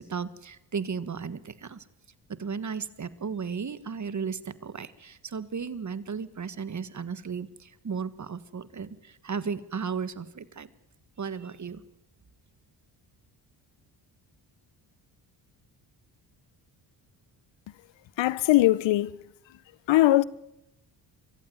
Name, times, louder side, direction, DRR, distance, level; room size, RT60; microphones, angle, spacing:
voice 1, 0.0-1.8 2.3-10.7 11.2-11.8, right 6 dB, 35° right, 1.5 m, -35 dB
voice 2, 18.2-19.2 19.5-19.6 19.9-20.2, left 15 dB, 65° left, 0.8 m, -21 dB
23.0 x 15.0 x 9.4 m
supercardioid pair, 60°, 47 cm